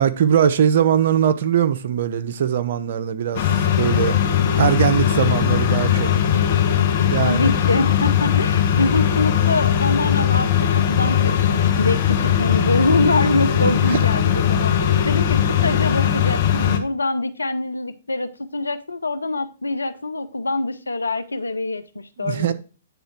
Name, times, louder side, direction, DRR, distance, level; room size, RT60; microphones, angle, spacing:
voice 1, 0.0-6.1 7.1-7.5 13.6-14.0 22.2-22.5, right 8 dB, 55° right, 0.8 m, -21 dB
sound 1, 3.3-16.8, left 9 dB, 45° left, 1.3 m, -19 dB
voice 2, 7.2-22.5, left 2 dB, 90° left, 0.8 m, -24 dB
9.3 x 3.7 x 4.5 m
hypercardioid pair, 125°, 0 cm